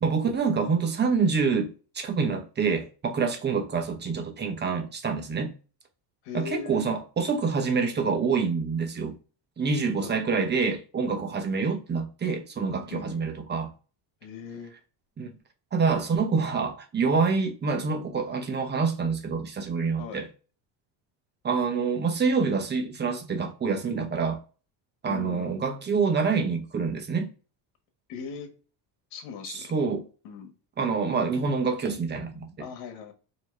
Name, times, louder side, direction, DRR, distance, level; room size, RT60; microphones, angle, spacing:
voice 1, 0.0-5.5 6.3-9.1 9.6-13.7 15.2-15.3 15.7-20.3 21.4-24.4 25.0-27.3 29.5-30.0 30.8-32.5, right 5 dB, 25° right, 0.9 m, -26 dB
voice 2, 6.2-6.8 10.0-10.1 12.8-13.3 14.2-14.7 20.0-20.2 25.0-25.5 28.1-28.6 29.1-29.7 30.2-30.5 32.6-33.1, left 7 dB, 85° left, 1.3 m, -39 dB
4.6 x 2.9 x 3.2 m
cardioid pair, 130°, 42 cm